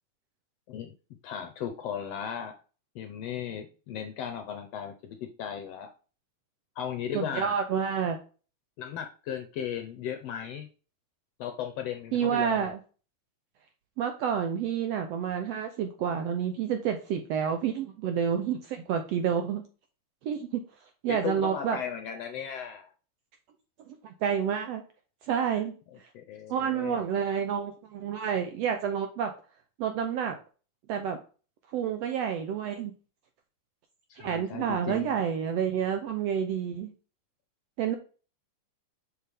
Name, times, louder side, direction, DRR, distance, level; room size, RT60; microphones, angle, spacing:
voice 1, 1.2-2.5 2.9-4.9 5.4-5.9 6.8-7.6 8.8-10.7 11.4-12.7 21.1-22.9 26.1-27.0 34.1-35.2, left 9 dB, 70° left, 6 dB, 1.6 m, -36 dB
voice 2, 7.1-8.2 12.1-12.8 14.0-19.6 20.2-20.6 21.0-21.8 23.9-24.8 25.2-25.8 26.5-29.3 29.8-30.4 30.9-31.2 31.7-32.9 34.2-36.9 37.8-38.0, right 8 dB, 75° right, 6 dB, 1.5 m, -29 dB
6.5 x 5.5 x 3.5 m, 0.36 s
omnidirectional pair, 3.6 m